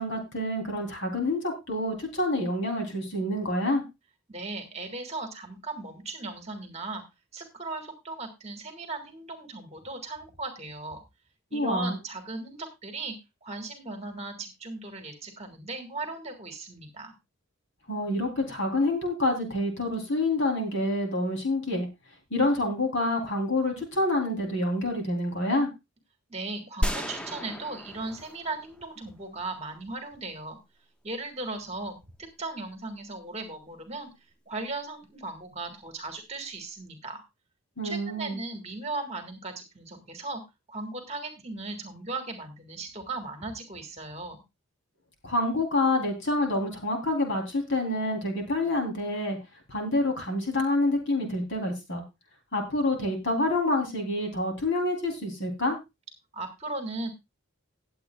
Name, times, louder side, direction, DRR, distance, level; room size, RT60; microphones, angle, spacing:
voice 1, 0.0-3.8 11.5-12.0 17.9-21.9 22.3-25.7 37.8-38.4 45.2-49.4 49.7-52.0 52.5-55.8, left 1 dB, 55° left, 3 dB, 3.3 m, -27 dB
voice 2, 4.3-7.0 7.3-11.0 11.5-13.2 13.4-17.1 26.3-30.6 31.0-34.1 34.5-37.2 37.8-40.4 40.7-44.4 56.3-57.1, right 3 dB, 30° right, 6 dB, 1.8 m, -37 dB
sound 1, 26.8-29.1, equal, 5° left, 0.6 m, -33 dB
18.5 x 7.9 x 2.3 m, 0.23 s
head